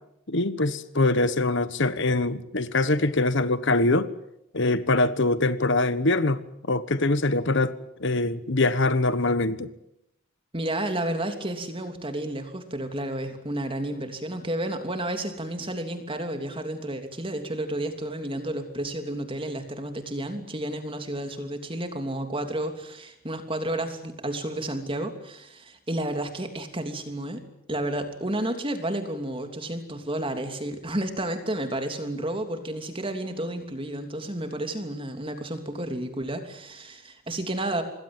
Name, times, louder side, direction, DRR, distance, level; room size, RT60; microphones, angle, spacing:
voice 1, 0.3-4.1 4.5-6.4 6.7-7.7 8.0-9.7, left 2 dB, 55° left, 14 dB, 1.3 m, -23 dB
voice 2, 10.5-27.4 27.7-37.8, right 1 dB, 25° right, 6 dB, 3.1 m, -31 dB
26.5 x 20.5 x 9.1 m, 0.79 s
head